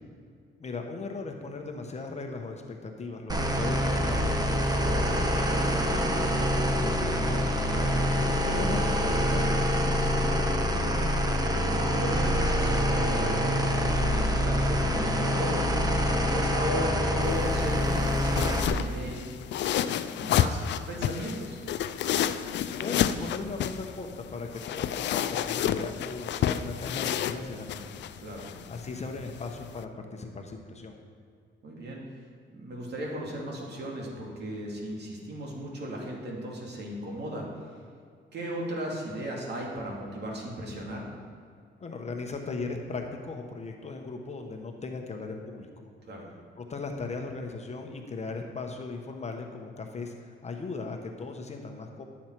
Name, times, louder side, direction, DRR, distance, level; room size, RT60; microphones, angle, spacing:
voice 1, 0.6-4.7 5.2-7.5 8.2-9.7 22.4-28.1 28.7-31.0 41.8-45.9 46.6-52.0, left 3 dB, 35° left, 3 dB, 1.1 m, -38 dB
sound 1, 3.3-18.7, equal, 20° right, 1.1 m, -26 dB
voice 2, 10.0-19.6 19.9-20.6 20.9-21.6 28.2-28.5 31.6-32.0 32.5-37.5 38.3-41.0 46.1-46.2, equal, 60° right, -2 dB, 2.4 m, -37 dB
sound 2, 17.2-29.8, left 10 dB, 65° left, 0.4 m, -31 dB
11.5 x 7.2 x 4.6 m, 2.2 s
cardioid pair, 90°, 20 cm